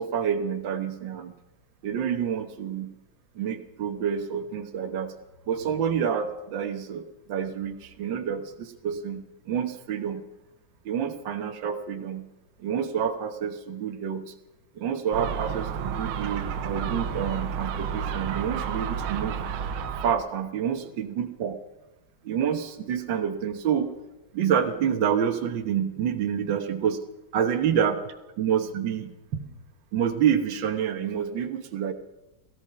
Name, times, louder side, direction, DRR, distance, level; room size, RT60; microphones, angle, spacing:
voice 1, 0.0-1.3 1.8-2.9 3.4-5.1 5.5-7.0 7.3-10.2 10.9-12.2 12.6-14.3 14.8-19.4 20.0-21.5 22.2-23.9 24.3-27.0 27.3-28.0 28.4-29.4 29.9-31.9, right 8 dB, 70° right, 5 dB, 1.8 m, -28 dB
Gull seagull, 15.1-20.2, right 7 dB, 90° right, 1.7 m, -31 dB
17.0 x 14.5 x 5.8 m, 0.99 s
omnidirectional pair, 2.2 m